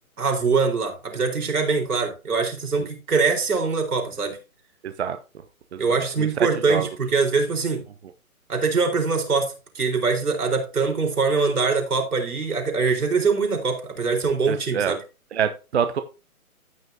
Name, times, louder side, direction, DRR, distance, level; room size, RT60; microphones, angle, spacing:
voice 1, 0.2-4.4 5.8-7.8 8.5-15.0, right 4 dB, 80° right, 3 dB, 4.3 m, -23 dB
voice 2, 4.8-5.2 5.7-5.8 6.2-6.3 6.7-6.9 14.5-14.9 15.3-16.0, right 8 dB, 45° right, 9 dB, 0.8 m, -25 dB
15.0 x 6.0 x 2.7 m, 0.31 s
hypercardioid pair, 155°, 44 cm